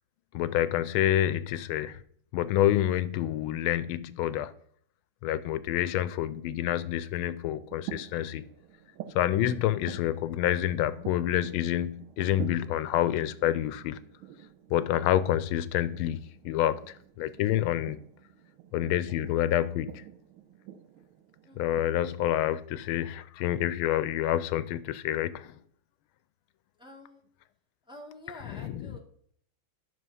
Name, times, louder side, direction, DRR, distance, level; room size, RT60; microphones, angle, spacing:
voice 1, 0.3-2.0 2.3-4.5 5.2-8.4 9.1-14.0 14.7-18.0 18.7-20.0 21.6-25.5 28.5-28.9, left 12 dB, 85° left, 1.4 m, -28 dB
sound 1, 7.6-21.9, right 11 dB, 90° right, 1.6 m, -47 dB
voice 2, 21.4-21.9 26.8-27.2 27.8-29.0, left 1 dB, 5° right, 1.3 m, -48 dB
10.5 x 6.2 x 5.5 m
omnidirectional pair, 2.3 m